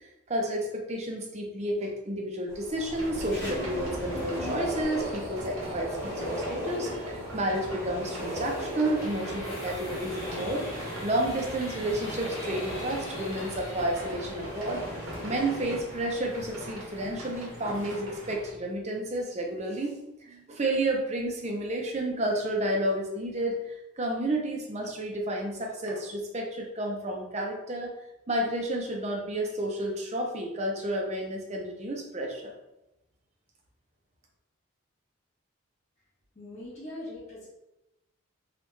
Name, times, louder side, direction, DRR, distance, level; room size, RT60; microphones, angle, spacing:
voice 1, 0.3-14.8 15.2-27.9 28.3-32.5, right 1 dB, 30° right, 1 dB, 0.5 m, -31 dB
sound 1, 2.5-15.8, equal, 10° left, 1.2 m, -37 dB
sound 2, 2.9-18.4, right 1 dB, 75° right, 1.0 m, -43 dB
sound 3, 9.0-18.5, left 1 dB, 70° left, 0.9 m, -43 dB
voice 2, 36.3-37.5, left 1 dB, 35° left, -7 dB, 1.2 m, -41 dB
3.0 x 2.4 x 3.1 m, 0.90 s
head